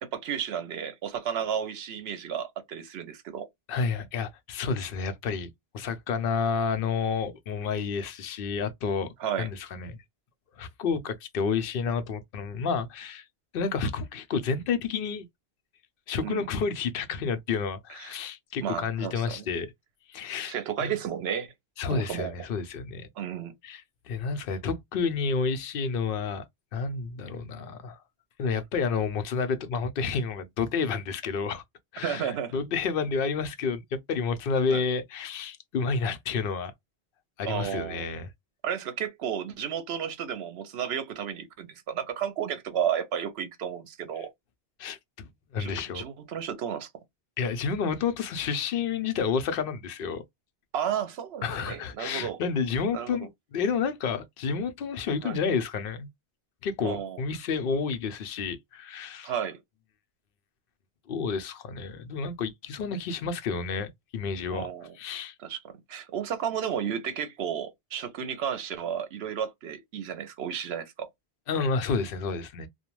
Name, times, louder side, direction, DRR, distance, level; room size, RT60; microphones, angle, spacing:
voice 1, 0.1-3.5 9.2-9.5 16.2-16.5 17.9-18.2 18.6-19.5 20.5-21.5 21.9-22.3 23.2-23.5 32.0-32.5 34.7-34.8 37.5-38.1 38.6-44.3 45.6-46.9 50.7-52.4 52.9-53.2 55.2-55.4 56.8-57.2 59.2-59.6 64.5-65.0 65.4-71.1, right 8 dB, 80° right, 0.9 m, -32 dB
voice 2, 3.7-10.0 10.6-13.2 13.5-15.3 16.1-19.7 20.1-20.5 20.8-20.9 21.8-23.1 23.6-26.4 26.7-28.0 28.4-31.6 31.9-36.7 37.4-38.3 44.8-45.3 45.5-46.0 47.4-50.2 51.4-56.1 56.6-59.3 61.1-64.7 65.0-65.3 71.5-72.7, left 5 dB, 65° left, 0.7 m, -30 dB
2.4 x 2.2 x 3.0 m
omnidirectional pair, 1.0 m